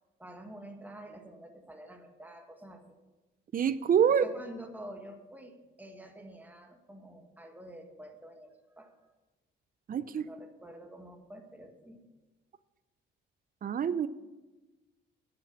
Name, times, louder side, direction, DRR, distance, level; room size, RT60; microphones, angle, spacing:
voice 1, 0.2-3.0 4.1-8.9 10.2-12.1, right 1 dB, 10° right, 4 dB, 1.8 m, -48 dB
voice 2, 3.5-4.2 9.9-10.3 13.6-14.1, right 8 dB, 45° right, 15 dB, 0.6 m, -26 dB
10.0 x 6.9 x 7.1 m, 1.2 s
cardioid pair, 90°, 20 cm